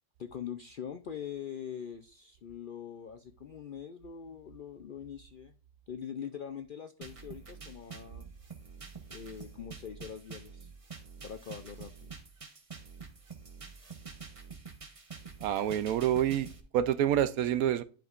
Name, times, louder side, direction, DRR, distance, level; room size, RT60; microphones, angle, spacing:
voice 1, 0.2-5.5 5.9-8.3 9.1-10.7 11.2-12.1, left 8 dB, 65° left, 0.5 m, -43 dB
sound 1, 7.0-16.6, right 5 dB, 30° right, 0.9 m, -47 dB
voice 2, 15.4-16.5 16.7-17.8, right 10 dB, 85° right, 1.1 m, -27 dB
11.0 x 5.1 x 2.5 m
omnidirectional pair, 1.5 m